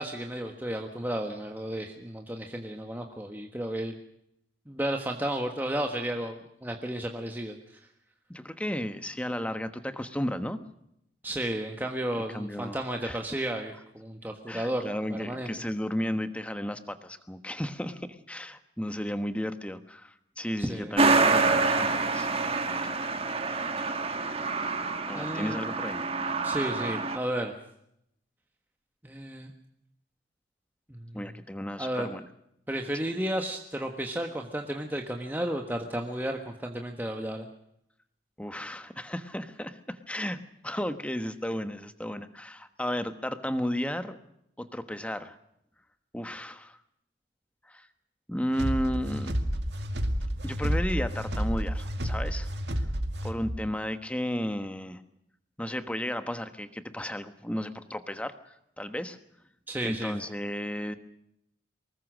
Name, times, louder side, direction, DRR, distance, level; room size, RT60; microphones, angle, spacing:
voice 1, 0.0-3.9 4.7-7.8 11.2-15.5 20.6-20.9 25.1-25.6 26.4-27.6 29.0-29.5 30.9-31.2 31.8-32.1 32.7-37.5 59.7-60.1, right 1 dB, 10° right, 3 dB, 1.4 m, -33 dB
voice 2, 8.3-10.6 12.3-13.2 14.5-22.3 22.6-22.8 25.1-26.0 31.1-32.2 38.4-44.2 44.6-45.4 46.1-46.8 47.7-47.9 48.3-49.3 50.4-52.5 52.7-52.9 53.2-55.0 55.6-59.2 59.8-61.0, equal, 5° left, 10 dB, 1.2 m, -34 dB
Truck, 21.0-27.2, right 3 dB, 30° right, 1.5 m, -27 dB
sound 1, 48.5-53.6, equal, 60° right, 2.3 m, -30 dB
24.5 x 20.5 x 6.4 m, 0.76 s
head